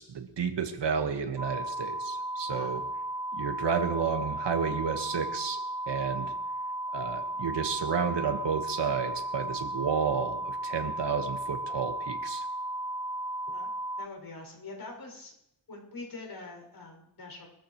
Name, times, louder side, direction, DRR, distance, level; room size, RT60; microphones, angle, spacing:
voice 1, 0.0-2.8 3.3-5.6 5.9-6.3 6.9-12.4, right 6 dB, 90° right, 5 dB, 1.6 m, -31 dB
sound 1, 1.4-14.1, right 1 dB, 10° right, 0.7 m, -35 dB
voice 2, 2.4-2.8 13.5-13.7 14.0-15.3 15.7-17.5, left 3 dB, 65° left, 0 dB, 6.6 m, -44 dB
23.0 x 14.0 x 3.2 m, 0.81 s
wide cardioid pair, 125°, 41 cm